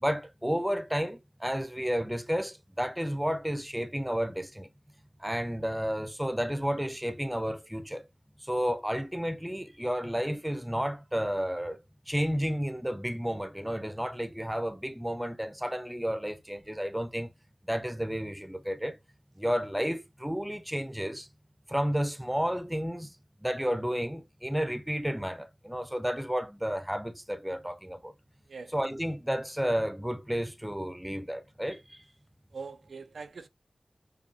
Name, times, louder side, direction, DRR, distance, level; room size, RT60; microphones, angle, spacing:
voice 1, 0.0-4.7 5.2-8.0 8.5-11.8 12.1-17.3 17.7-19.0 19.4-21.3 21.7-23.1 23.4-28.1 28.7-31.8, equal, 5° right, 0.5 m, -31 dB
voice 2, 32.5-33.5, right 4 dB, 85° right, 0.3 m, -42 dB
5.3 x 2.3 x 2.6 m
cardioid pair, 50°, 0 cm